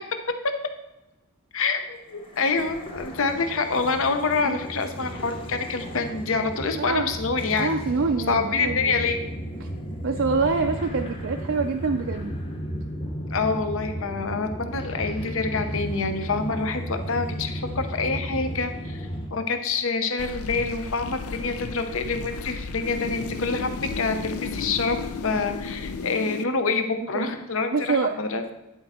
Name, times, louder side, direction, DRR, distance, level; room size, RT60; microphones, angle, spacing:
voice 1, 1.5-7.7 8.3-9.2 13.3-28.4, left 4 dB, 65° left, 7 dB, 0.8 m, -26 dB
sound 1, 2.1-19.3, equal, 25° left, 1.0 m, -34 dB
voice 2, 6.6-7.1 7.6-9.1 9.6-9.7 10.0-12.4 27.1-27.3 27.7-28.2, right 4 dB, 55° right, 4 dB, 0.4 m, -26 dB
sound 2, 20.2-26.4, left 4 dB, 90° left, 0.5 m, -34 dB
10.5 x 4.4 x 4.3 m, 1.0 s
head